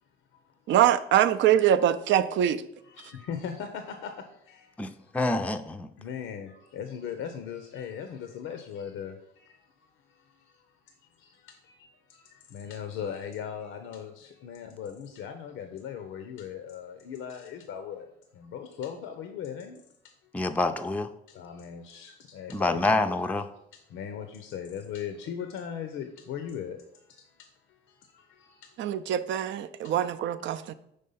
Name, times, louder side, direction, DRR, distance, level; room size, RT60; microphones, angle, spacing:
voice 1, 0.7-2.6 28.8-30.7, right 11 dB, 70° right, 0.4 m, -23 dB
voice 2, 2.8-4.1 4.5-4.7 6.0-9.6 11.2-18.1 18.3-19.8 20.4-20.5 21.3-23.0 23.9-26.8 28.2-28.6 29.8-29.9, left 8 dB, 85° left, 0.6 m, -38 dB
voice 3, 4.8-5.9 20.3-21.1 22.5-23.4, left 2 dB, 5° left, 0.4 m, -27 dB
5.4 x 3.3 x 5.4 m
cardioid pair, 90°, 20 cm